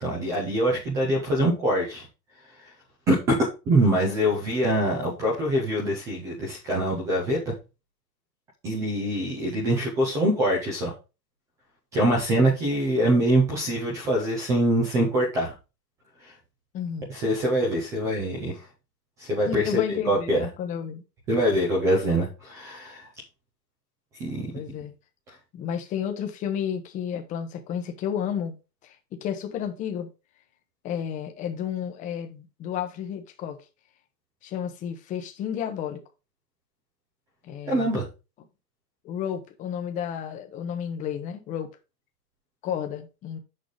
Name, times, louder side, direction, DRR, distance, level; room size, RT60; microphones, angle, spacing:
voice 1, 0.0-2.1 3.1-3.4 3.7-7.5 8.6-10.9 11.9-15.5 17.1-18.6 19.2-20.4 21.3-23.0 24.2-24.5 37.7-38.1, right 1 dB, 5° right, 0.4 m, -24 dB
voice 2, 16.7-17.1 19.5-21.0 24.5-24.9 25.5-28.5 28.8-30.1 30.8-33.6 34.4-36.0 37.4-37.9 39.0-41.7 42.6-43.4, left 8 dB, 15° left, 0.8 m, -32 dB
6.5 x 5.3 x 4.7 m
supercardioid pair, 155°, 49 cm